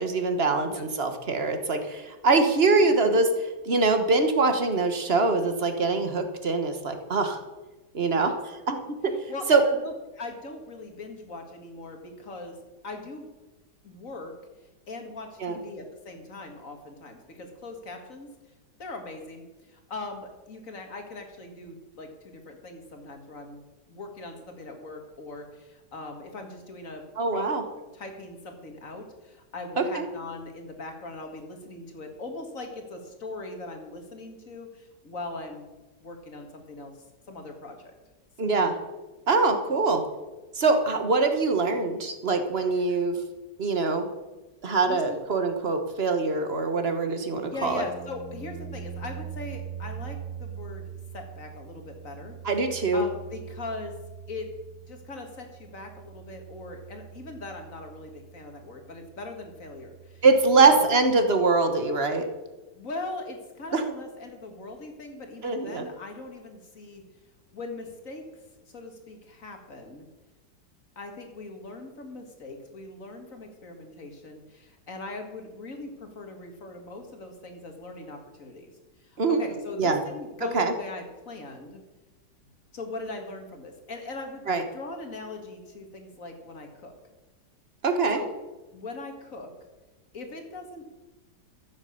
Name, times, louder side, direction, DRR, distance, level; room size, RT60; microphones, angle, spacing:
voice 1, 0.0-3.3 3.6-7.4 7.9-8.3 8.7-9.1 9.5-9.6 15.4-15.6 27.2-27.6 29.8-30.1 38.4-38.7 39.3-40.0 40.5-43.2 43.6-44.1 44.6-47.9 52.4-53.0 60.2-62.2 63.7-63.8 65.4-65.8 79.2-79.4 79.8-80.0 80.5-80.7 84.5-84.6 87.8-88.2, right 3 dB, 40° right, 7 dB, 1.4 m, -23 dB
voice 2, 9.1-12.6 12.8-13.3 13.8-14.3 14.9-18.3 18.8-23.6 23.9-27.0 27.3-27.4 27.7-35.7 36.0-36.9 37.3-37.9 38.4-38.5 42.7-43.0 44.9-45.2 47.4-52.4 52.9-54.0 54.3-54.5 54.9-60.2 60.6-60.8 62.7-67.0 67.5-68.2 68.6-70.1 71.0-78.7 79.0-81.8 82.7-84.5 84.7-86.9 88.1-88.3 88.7-89.5 90.1-90.9, left 2 dB, 50° left, 4 dB, 2.3 m, -40 dB
sound 1, 47.6-61.6, right 8 dB, 15° right, 3.5 m, -43 dB
14.0 x 8.1 x 6.8 m, 1.1 s
omnidirectional pair, 1.8 m